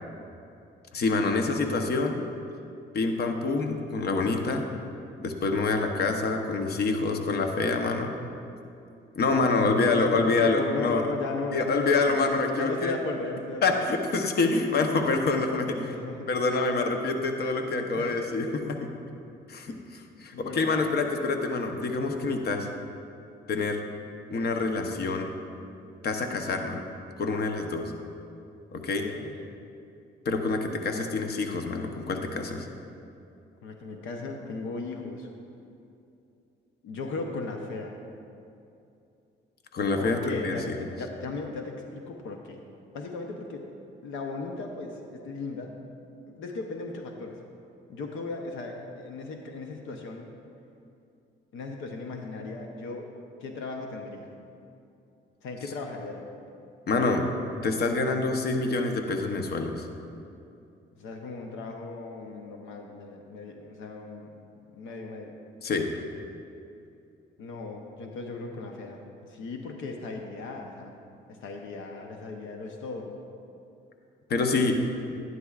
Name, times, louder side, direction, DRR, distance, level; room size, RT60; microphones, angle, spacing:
voice 1, 0.9-2.2 2.9-4.7 5.2-8.1 9.2-11.0 11.5-12.9 13.6-15.7 16.3-18.9 19.5-22.7 23.5-23.8 24.3-25.3 26.0-26.8 27.2-27.9 28.7-29.1 30.3-32.7 39.7-40.8 56.9-57.3 57.6-59.7 65.6-65.9 74.3-74.8, left 3 dB, 55° left, 4 dB, 0.9 m, -26 dB
voice 2, 9.4-13.8 15.0-16.3 17.8-18.3 20.3-20.9 29.0-29.3 33.6-35.3 36.8-38.0 40.0-42.6 42.9-43.7 44.0-45.8 46.3-47.4 47.9-50.3 51.5-53.1 53.4-54.3 55.4-56.3 61.0-64.3 64.8-65.4 67.4-69.0 69.3-70.9 71.3-73.1, left 3 dB, 85° left, 3 dB, 0.8 m, -36 dB
11.5 x 11.0 x 2.4 m, 2.7 s
cardioid pair, 90°, 20 cm